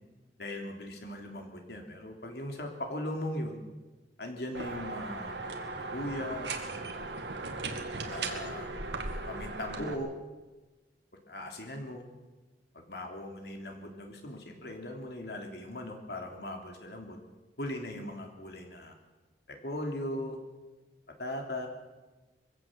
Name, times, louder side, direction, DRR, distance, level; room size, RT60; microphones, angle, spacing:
voice 1, 0.4-3.6 4.2-7.1 8.1-8.7 9.3-10.1 11.3-12.1 12.7-17.2 17.6-18.9 19.5-20.4 21.2-21.7, left 1 dB, 65° left, 3 dB, 3.3 m, -39 dB
sound 1, 4.5-9.9, right 3 dB, 85° right, 2.3 m, -37 dB
23.0 x 16.0 x 7.6 m, 1.2 s
head